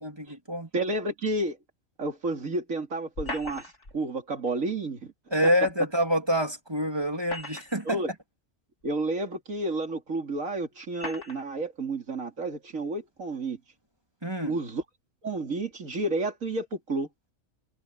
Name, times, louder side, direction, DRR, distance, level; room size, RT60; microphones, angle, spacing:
voice 1, 0.0-0.7 5.3-8.0 14.2-14.5, equal, 20° right, 3.1 m, -27 dB
voice 2, 0.7-1.6 2.0-5.1 7.8-8.1 8.8-13.6 14.5-14.8 15.2-17.1, right 2 dB, 75° right, 3.2 m, -31 dB
sound 1, 3.1-4.0 5.7-5.8 7.0-8.0 8.8-8.9 9.9-10.0 10.9-11.5, left 2 dB, 60° left, 4.7 m, -38 dB
omnidirectional pair, 1.4 m